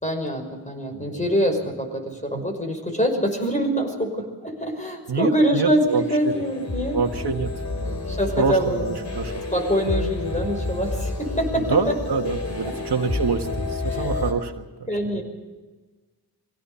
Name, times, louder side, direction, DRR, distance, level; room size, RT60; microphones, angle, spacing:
voice 1, 0.0-7.0 8.1-9.2 9.5-11.9 12.6-12.7 13.9-14.2 14.9-15.2, equal, 15° left, 3 dB, 5.7 m, -25 dB
voice 2, 0.9-1.3 2.3-2.4 5.1-6.3 6.9-9.4 11.5-15.2, right 5 dB, 70° right, 4 dB, 1.7 m, -27 dB
sound 1, 5.9-14.3, left 2 dB, 40° left, 4.3 m, -30 dB
24.0 x 17.0 x 7.0 m, 1.3 s
wide cardioid pair, 75°, 41 cm